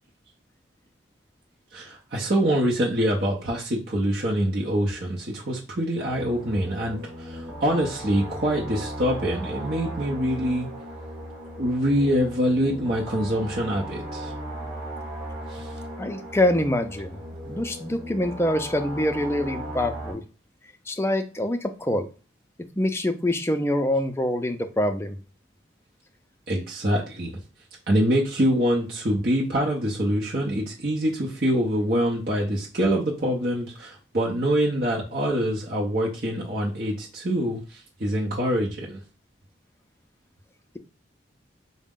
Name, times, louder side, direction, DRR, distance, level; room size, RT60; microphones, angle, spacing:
voice 1, 1.7-10.7 11.6-14.3 15.5-15.7 26.5-27.4 27.9-39.0, equal, 55° right, -4 dB, 0.7 m, -25 dB
sound 1, 6.0-20.1, equal, 10° right, 1.4 m, -37 dB
voice 2, 16.0-17.1 17.5-20.2 20.9-22.1 22.8-25.1, left 1 dB, 15° left, 6 dB, 0.4 m, -25 dB
4.8 x 2.1 x 3.6 m, 0.34 s
head